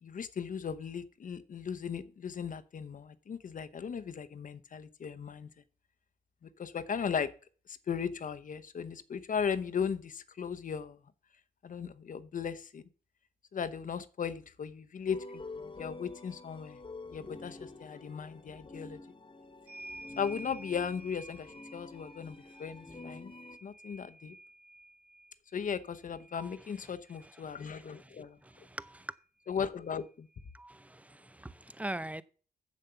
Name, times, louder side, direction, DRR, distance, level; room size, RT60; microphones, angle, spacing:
voice 1, 0.0-5.5 6.4-7.3 7.7-11.0 11.6-12.8 13.5-15.2 15.5-16.8 17.1-19.0 20.2-23.3 23.6-24.3 25.5-28.4 29.5-30.3, left 7 dB, 55° left, 0.9 m, -37 dB
sound 1, 15.1-23.6, left 3 dB, 30° left, 1.4 m, -48 dB
sound 2, 19.7-27.8 29.0-29.1 29.4-30.5, right 1 dB, 85° right, 2.1 m, -52 dB
voice 2, 27.4-28.1 28.4-29.1 30.5-32.2, right 1 dB, 10° right, 0.6 m, -43 dB
7.6 x 7.3 x 6.9 m
cardioid pair, 75°, 16 cm